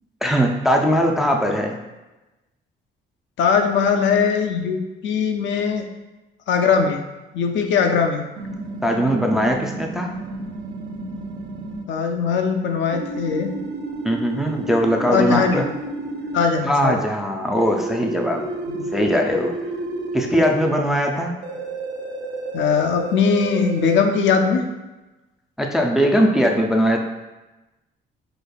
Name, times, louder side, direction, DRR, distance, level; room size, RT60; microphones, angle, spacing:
voice 1, 0.2-1.8 8.8-10.1 14.0-15.7 16.6-18.4 18.9-19.5 20.1-21.3 25.6-27.0, equal, ahead, 1 dB, 0.3 m, -20 dB
voice 2, 3.4-5.8 6.5-7.0 7.3-8.2 11.9-13.5 15.1-15.6 16.3-17.0 18.7-18.8 22.5-24.7, left 6 dB, 70° left, 4 dB, 0.5 m, -20 dB
sound 1, 8.4-11.8 12.9-16.4 17.6-20.7 21.4-23.8, right 2 dB, 60° right, 0.5 m, -31 dB
5.0 x 2.4 x 2.3 m, 1.1 s
cardioid pair, 90°, 20 cm